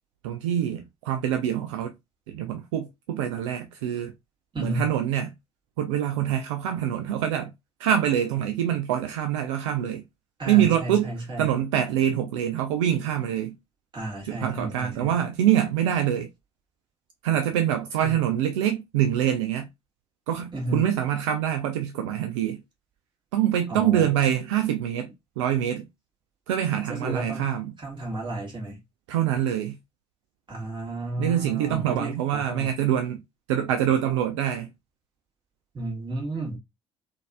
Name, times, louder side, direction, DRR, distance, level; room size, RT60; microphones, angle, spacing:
voice 1, 0.2-1.9 2.3-4.1 4.6-5.3 5.8-7.5 7.8-10.0 10.5-11.1 11.4-13.5 14.3-16.3 17.2-19.7 20.3-22.6 23.3-25.1 25.4-25.9 26.5-27.7 29.1-29.8 31.2-33.2 33.5-34.7, right 10 dB, 70° right, 0.4 m, -25 dB
voice 2, 4.5-4.9 10.4-11.5 13.9-15.2 18.0-18.1 20.5-20.9 23.7-24.1 26.9-27.5 27.8-28.8 30.5-32.7 35.7-36.6, right 1 dB, 30° right, 1.8 m, -32 dB
3.8 x 2.7 x 2.2 m
figure-of-eight pair, 50°, 16 cm